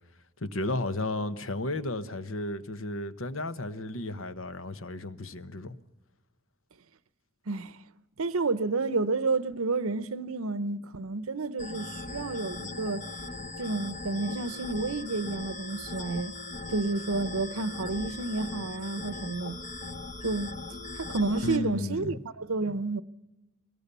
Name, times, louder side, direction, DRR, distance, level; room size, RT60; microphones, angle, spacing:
voice 1, 0.4-5.8 21.4-22.2, left 1 dB, 70° left, 1.0 m, -33 dB
voice 2, 7.5-7.8 8.2-13.1 13.6-16.3 16.7-19.6 20.2-20.5 21.0-23.0, right 3 dB, 80° right, 0.8 m, -30 dB
sound 1, 11.6-21.6, left 2 dB, 35° left, 0.9 m, -39 dB
23.0 x 19.5 x 6.9 m
head